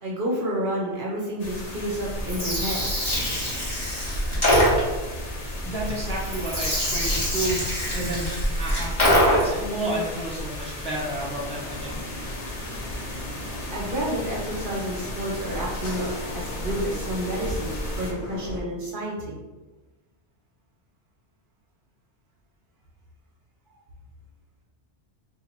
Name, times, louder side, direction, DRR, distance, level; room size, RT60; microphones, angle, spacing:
voice 1, 0.0-2.8 13.7-19.4, equal, 55° right, -3 dB, 0.9 m, -30 dB
sound 1, 1.4-18.1, left 1 dB, 90° left, 1.1 m, -36 dB
Gurgling, 2.1-9.7, equal, 25° left, 1.3 m, -24 dB
voice 2, 5.6-8.3 8.6-12.0, right 1 dB, 5° left, -6 dB, 0.6 m, -31 dB
sound 2, 11.1-18.6, left 1 dB, 55° left, 0.9 m, -37 dB
2.9 x 2.5 x 4.0 m, 1.2 s
omnidirectional pair, 1.2 m